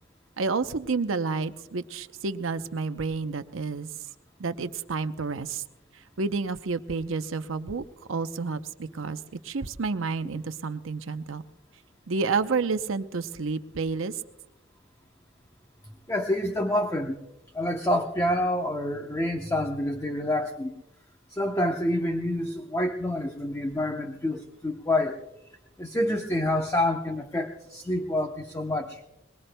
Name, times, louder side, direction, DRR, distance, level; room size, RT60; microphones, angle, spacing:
voice 1, 0.4-3.9 4.4-5.6 5.9-11.4 12.1-14.2, right 4 dB, 90° right, 10 dB, 0.7 m, -30 dB
voice 2, 16.1-17.2 17.5-20.7 21.3-25.2 25.8-29.0, left 1 dB, 15° left, 4 dB, 0.8 m, -27 dB
22.5 x 21.5 x 2.2 m, 0.95 s
head